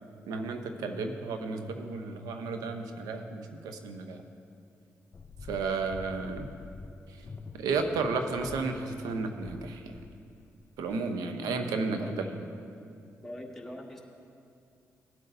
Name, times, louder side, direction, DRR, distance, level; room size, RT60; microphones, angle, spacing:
voice 1, 0.3-4.2 5.5-6.5 7.6-9.9 10.8-12.3, right 4 dB, 85° right, 6 dB, 0.8 m, -33 dB
sound 1, 5.1-11.0, left 4 dB, 35° left, 0.5 m, -46 dB
voice 2, 13.2-14.0, left 1 dB, 5° left, -1 dB, 1.6 m, -42 dB
17.5 x 8.0 x 2.6 m, 2.5 s
supercardioid pair, 60°, 6 cm